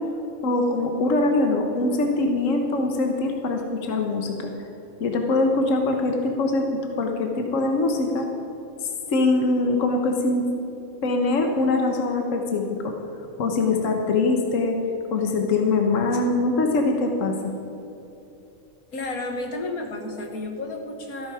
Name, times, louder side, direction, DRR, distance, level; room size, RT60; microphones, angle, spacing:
voice 1, 0.4-4.5 5.0-8.3 9.1-10.5 11.0-12.9 13.4-14.8 15.1-17.5, left 2 dB, 65° left, 3 dB, 1.5 m, -23 dB
voice 2, 18.9-21.3, left 2 dB, 85° left, 3 dB, 2.0 m, -32 dB
14.0 x 13.0 x 4.9 m, 2.9 s
omnidirectional pair, 1.5 m